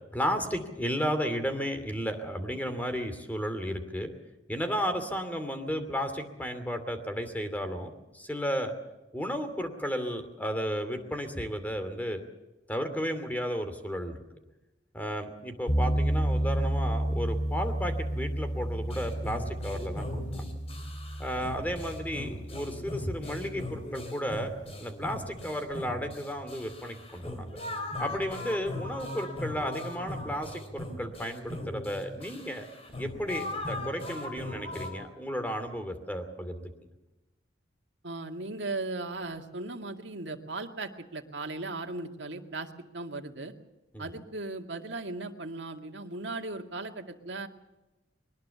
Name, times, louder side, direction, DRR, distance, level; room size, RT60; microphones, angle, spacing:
voice 1, 0.1-4.1 4.5-8.7 9.1-12.2 12.7-14.2 14.9-20.5 21.2-24.5 24.8-27.6 28.0-32.7 33.0-36.7 43.9-44.1, equal, 10° left, 7 dB, 2.6 m, -33 dB
sound 1, 15.7-23.8, right 1 dB, 80° left, 4.3 m, -31 dB
sound 2, 18.9-34.9, left 1 dB, 35° left, 4.0 m, -39 dB
voice 2, 38.0-43.5 44.0-47.5, right 2 dB, 65° right, 4 dB, 2.2 m, -37 dB
22.5 x 19.5 x 7.0 m, 1.0 s
head